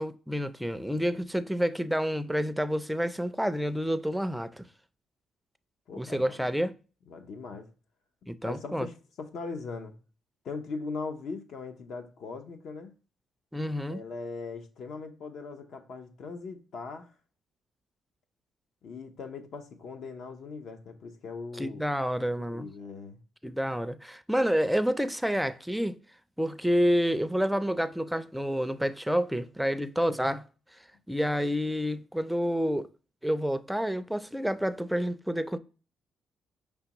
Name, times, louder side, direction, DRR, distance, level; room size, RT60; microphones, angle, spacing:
voice 1, 0.0-4.7 5.9-6.8 8.3-8.9 13.5-14.0 21.6-22.7 23.4-26.0 26.4-30.4 31.1-32.9 33.2-35.6, equal, ahead, 0.4 m, -29 dB
voice 2, 5.9-6.5 7.1-7.7 8.4-10.0 10.4-12.9 13.9-17.1 18.8-21.9 22.4-23.2, left 4 dB, 70° left, 0.8 m, -40 dB
5.2 x 3.4 x 2.9 m
cardioid pair, 90°, 0 cm